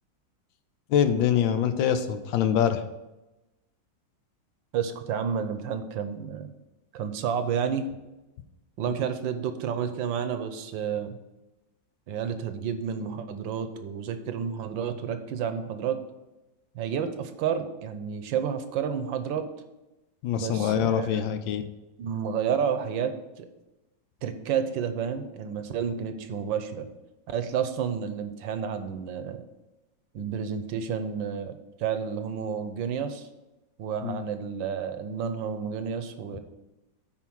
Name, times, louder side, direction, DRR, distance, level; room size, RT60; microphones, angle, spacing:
voice 1, 0.9-2.8 20.2-21.6 34.0-34.2, left 9 dB, 85° left, 9 dB, 1.5 m, -24 dB
voice 2, 4.7-6.5 6.9-7.9 8.8-11.2 12.1-16.0 16.7-19.5 20.4-21.3 22.0-23.5 24.2-26.9 27.3-29.4 30.1-33.3 33.8-36.4, right 7 dB, 80° right, 9 dB, 1.5 m, -30 dB
9.3 x 4.5 x 6.3 m, 1.0 s
omnidirectional pair, 2.0 m